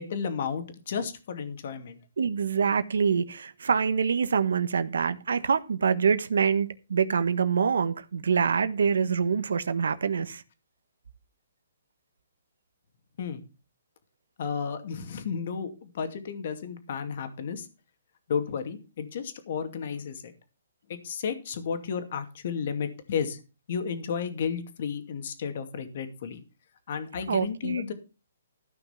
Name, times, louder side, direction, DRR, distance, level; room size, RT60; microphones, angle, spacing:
voice 1, 0.0-2.0 13.2-13.4 14.4-17.7 18.3-20.3 20.9-23.4 23.7-26.4 26.9-27.9, left 6 dB, 50° left, 2.4 m, -33 dB
voice 2, 2.2-10.4 27.3-27.8, right 6 dB, 80° right, 1.2 m, -25 dB
14.5 x 6.0 x 5.8 m
hypercardioid pair, 160°, 0 cm